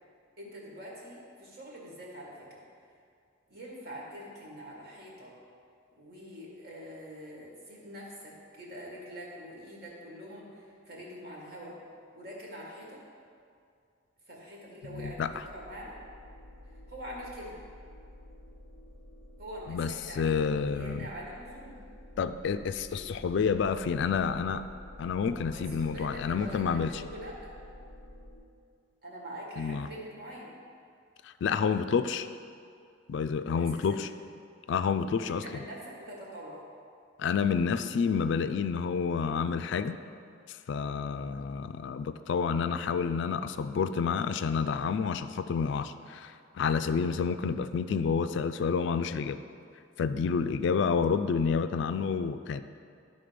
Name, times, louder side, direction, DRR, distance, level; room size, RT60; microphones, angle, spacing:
voice 1, 0.4-2.6 3.5-5.3 6.0-11.8 12.1-13.0 14.3-15.9 16.9-17.5 19.4-21.8 22.9-23.1 25.2-27.5 29.0-30.5 33.6-34.0 35.2-36.6, equal, 50° right, -4 dB, 1.9 m, -44 dB
voice 2, 14.9-15.3 19.7-19.9 20.2-21.1 22.2-24.6 25.0-26.9 29.6-29.9 31.2-32.3 33.1-34.1 34.7-35.4 37.2-40.0 40.5-49.4 50.0-52.6, left 6 dB, 60° left, 10 dB, 0.3 m, -29 dB
sound 1, 15.0-28.4, left 1 dB, 70° right, 1.8 m, -50 dB
11.5 x 4.0 x 5.1 m, 2.3 s
head